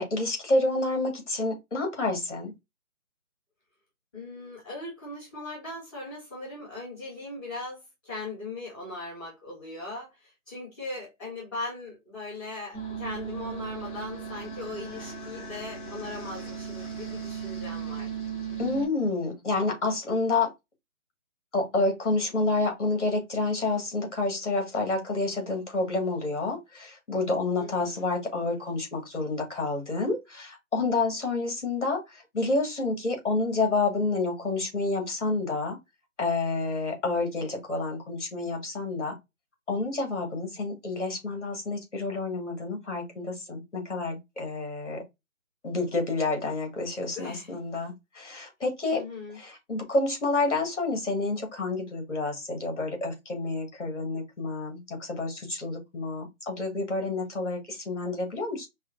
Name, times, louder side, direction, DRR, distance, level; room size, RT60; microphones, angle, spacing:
voice 1, 0.0-2.5 18.6-20.5 21.5-35.8 36.2-39.1 39.7-45.0 45.6-49.0 49.3-58.7, left 3 dB, 55° left, 1.9 m, -29 dB
voice 2, 4.1-18.1 27.6-28.1 47.1-47.5 48.9-49.4, left 2 dB, 15° left, 1.6 m, -39 dB
sound 1, 12.7-18.9, right 6 dB, 35° left, 2.5 m, -37 dB
5.4 x 2.1 x 2.5 m
hypercardioid pair, 175°, 42 cm